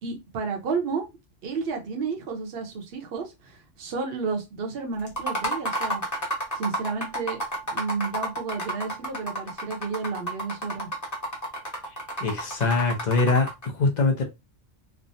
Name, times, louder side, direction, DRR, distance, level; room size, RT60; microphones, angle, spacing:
voice 1, 0.0-1.1 1.4-6.0 6.5-7.4 7.7-10.9, right 5 dB, 60° right, 0.9 m, -31 dB
sound 1, 5.1-13.7, right 1 dB, 15° left, 0.8 m, -31 dB
voice 2, 12.2-14.2, left 3 dB, 45° left, 0.7 m, -23 dB
3.3 x 2.0 x 2.5 m
omnidirectional pair, 1.2 m